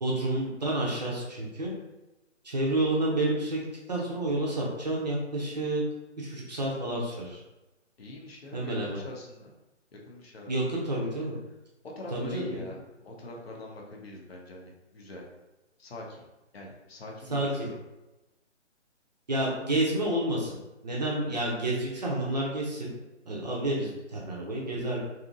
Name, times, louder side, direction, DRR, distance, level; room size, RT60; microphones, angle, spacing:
voice 1, 0.0-1.7 2.4-5.8 6.2-7.4 8.5-9.0 10.5-11.4 12.1-12.6 17.3-17.7 19.3-20.6 20.8-22.9 23.2-25.0, right 1 dB, 35° right, -3 dB, 0.5 m, -29 dB
voice 2, 8.0-9.5 9.9-10.7 12.0-15.3 15.8-16.3 16.5-17.8, left 2 dB, 55° left, -1 dB, 0.7 m, -44 dB
2.7 x 2.5 x 2.5 m, 1.0 s
figure-of-eight pair, 140°, 37 cm